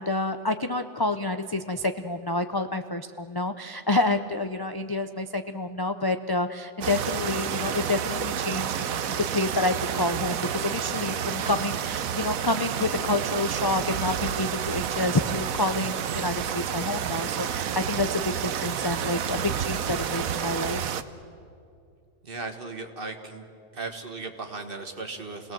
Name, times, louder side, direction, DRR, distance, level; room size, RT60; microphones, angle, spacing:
voice 1, 0.0-20.9, left 2 dB, 35° left, 7 dB, 0.4 m, -28 dB
sound 1, 6.8-21.0, right 8 dB, 90° right, 1.3 m, -30 dB
voice 2, 22.2-23.5 23.7-25.5, right 3 dB, 40° right, 5 dB, 1.9 m, -36 dB
29.0 x 18.5 x 7.7 m, 2.4 s
omnidirectional pair, 1.4 m